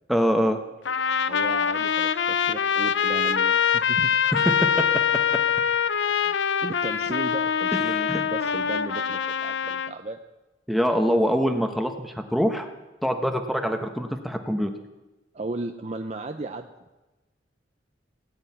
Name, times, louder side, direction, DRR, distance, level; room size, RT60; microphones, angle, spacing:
voice 1, 0.1-0.6 4.3-4.8 7.9-8.2 10.7-12.7 13.0-14.7, equal, ahead, 5 dB, 0.9 m, -24 dB
Trumpet, 0.8-9.9, left 7 dB, 80° left, 0.6 m, -24 dB
voice 2, 1.3-4.2 6.2-10.2 15.3-16.7, right 2 dB, 35° right, 5 dB, 0.6 m, -35 dB
17.5 x 7.9 x 9.4 m, 1.1 s
head